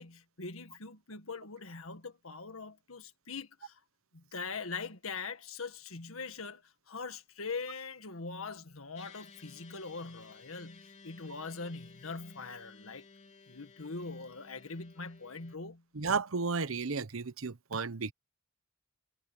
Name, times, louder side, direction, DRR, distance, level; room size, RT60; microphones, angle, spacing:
voice 1, 0.0-3.8 4.1-13.1 13.5-15.8, left 4 dB, 85° left, 1.8 m, -42 dB
sound 1, 8.9-15.6, left 5 dB, 35° left, 3.5 m, -56 dB
voice 2, 16.0-18.1, right 4 dB, 80° right, 1.0 m, -33 dB
head